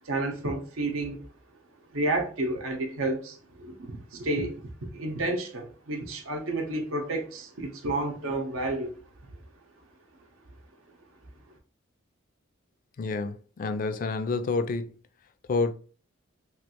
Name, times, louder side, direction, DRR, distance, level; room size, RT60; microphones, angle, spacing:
voice 1, 0.0-1.2 1.9-4.5 4.9-8.9, right 2 dB, 80° right, 0.7 m, -30 dB
voice 2, 13.0-14.9 15.5-15.7, left 3 dB, 40° left, 0.3 m, -28 dB
3.1 x 2.3 x 2.9 m
head